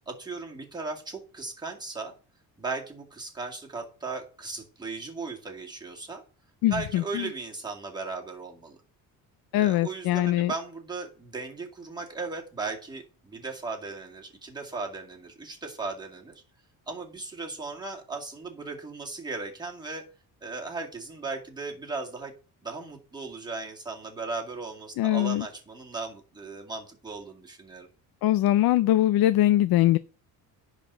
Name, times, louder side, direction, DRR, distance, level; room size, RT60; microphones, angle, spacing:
voice 1, 0.1-2.1 2.6-6.2 6.7-8.8 9.6-16.4 16.9-20.0 20.4-22.3 22.6-27.9, right 3 dB, 10° right, 2.2 m, -37 dB
voice 2, 6.6-7.3 9.5-10.5 25.0-25.5 28.2-30.0, left 14 dB, 70° left, 0.6 m, -22 dB
10.5 x 4.2 x 6.9 m
cardioid pair, 155°, 38 cm